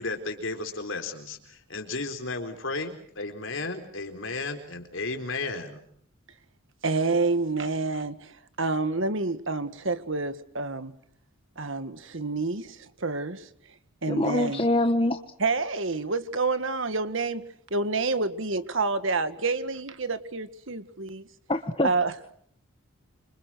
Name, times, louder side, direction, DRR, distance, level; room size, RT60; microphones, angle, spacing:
voice 1, 0.0-5.8, left 3 dB, 65° left, 4.2 m, -34 dB
voice 2, 6.8-11.0 11.5-13.5 14.0-14.7 15.4-21.3 21.8-22.3, right 3 dB, 65° right, 1.8 m, -28 dB
voice 3, 14.1-15.2 21.5-21.9, left 1 dB, 25° left, 1.2 m, -24 dB
27.5 x 26.0 x 6.4 m
head